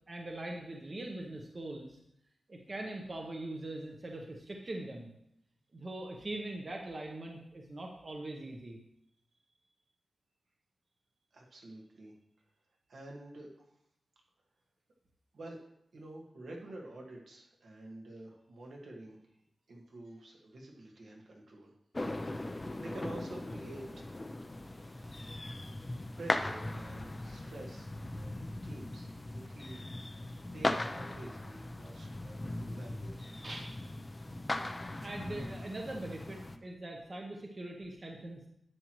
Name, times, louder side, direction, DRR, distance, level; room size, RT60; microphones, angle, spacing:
voice 1, 0.1-2.0 2.5-5.1 5.7-8.8 24.7-25.1 33.4-34.0 35.0-38.5, right 1 dB, 35° right, 1 dB, 0.9 m, -42 dB
voice 2, 11.3-12.2 12.9-13.5 15.3-15.6 15.9-19.2 19.7-21.7 22.2-24.1 25.2-33.3, right 1 dB, 75° right, -1 dB, 1.7 m, -49 dB
sound 1, 21.9-36.6, left 2 dB, 20° left, 0.5 m, -39 dB
10.5 x 7.6 x 3.1 m, 0.77 s
wide cardioid pair, 150°, 0 cm